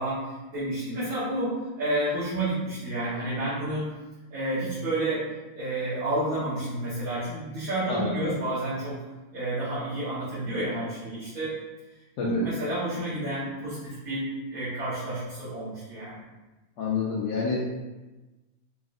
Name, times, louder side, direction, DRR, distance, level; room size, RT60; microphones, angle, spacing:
voice 1, 0.0-3.9 4.3-5.2 5.5-8.9 9.3-11.5 12.2-16.2, right 1 dB, 60° right, -12 dB, 1.7 m, -30 dB
voice 2, 7.9-8.4 12.2-12.4 16.8-17.7, left 4 dB, 90° left, -6 dB, 1.2 m, -28 dB
4.1 x 3.2 x 2.5 m, 1.1 s
omnidirectional pair, 1.7 m